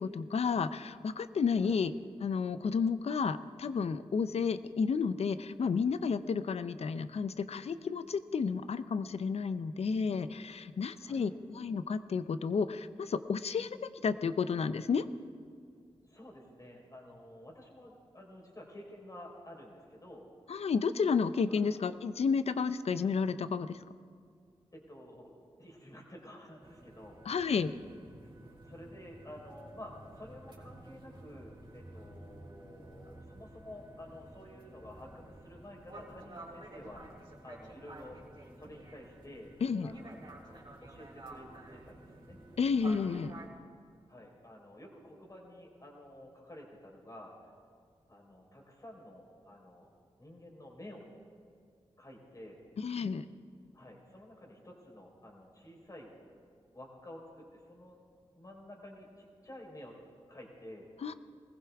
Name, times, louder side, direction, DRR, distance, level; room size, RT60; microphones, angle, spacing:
voice 1, 0.0-1.9 2.2-13.7 14.0-15.1 20.5-23.8 27.3-27.7 39.6-39.9 42.6-43.3 52.8-53.3 61.0-61.1, left 5 dB, 70° left, 13 dB, 0.6 m, -31 dB
voice 2, 16.0-20.3 21.5-21.6 24.7-27.2 28.4-37.0 37.4-38.2 38.6-39.5 39.8-42.4 44.1-47.3 48.1-49.9 50.2-51.1 52.0-52.6 53.7-56.1 56.7-58.0 58.3-60.0 60.3-60.9, left 1 dB, 30° left, -1 dB, 4.2 m, -51 dB
sound 1, 26.6-43.5, right 1 dB, 45° right, 3.3 m, -52 dB
21.0 x 15.5 x 3.5 m, 2.2 s
cardioid pair, 50°, 11 cm